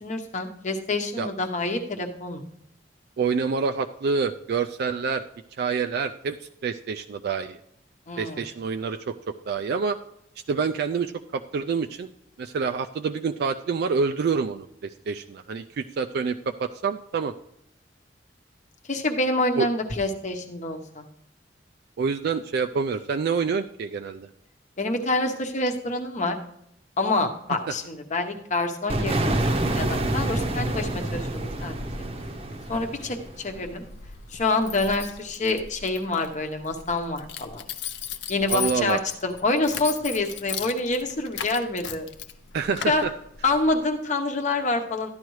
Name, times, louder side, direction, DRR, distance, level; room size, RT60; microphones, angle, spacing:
voice 1, 0.0-2.5 8.1-8.4 18.9-21.0 24.8-26.4 27.0-29.3 29.8-31.9 32.7-33.8 34.3-37.6 38.3-42.1 42.9-43.0 43.4-45.1, left 2 dB, 45° left, 5 dB, 0.9 m, -27 dB
voice 2, 3.2-5.2 5.6-7.6 8.2-10.0 10.5-12.1 12.4-17.3 19.6-19.7 22.0-24.3 38.5-39.0 42.5-43.1, right 5 dB, 60° right, 7 dB, 0.3 m, -27 dB
sound 1, 28.9-33.6, right 1 dB, 35° right, 0.8 m, -27 dB
Keys jangling, 30.9-43.9, left 7 dB, 70° left, 0.7 m, -38 dB
13.0 x 10.5 x 3.1 m, 0.78 s
head